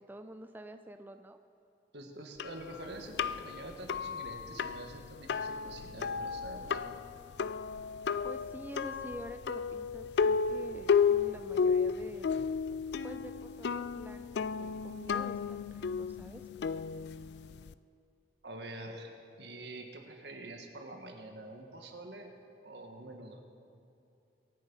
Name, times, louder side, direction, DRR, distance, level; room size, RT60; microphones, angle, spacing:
voice 1, 0.0-1.4 8.2-12.4 13.0-16.4, right 1 dB, 10° right, 8 dB, 0.4 m, -47 dB
voice 2, 1.9-7.0 18.4-19.1 19.4-22.3 22.6-23.4, right 1 dB, 75° right, 3 dB, 1.7 m, -46 dB
sound 1, 2.4-17.7, left 6 dB, 75° left, 0.4 m, -33 dB
24.0 x 8.2 x 5.6 m, 2.8 s
head